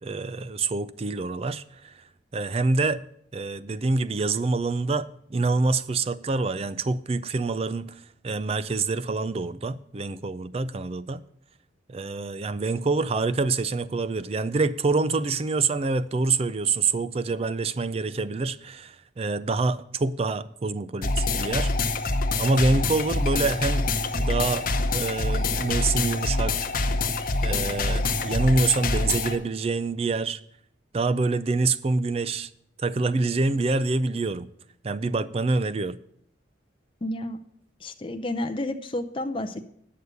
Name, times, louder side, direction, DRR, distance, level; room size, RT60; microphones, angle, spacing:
voice 1, 0.0-2.0 2.3-3.0 3.3-11.2 11.9-21.7 22.4-23.9 24.1-26.7 27.4-30.4 30.9-32.5 32.8-34.5 34.8-36.0, right 3 dB, 30° right, 0.4 m, -26 dB
sound 1, 21.0-29.4, left 3 dB, 45° left, 0.9 m, -25 dB
voice 2, 37.0-37.4 37.8-39.7, left 1 dB, 25° left, 0.5 m, -31 dB
9.4 x 6.7 x 6.8 m
head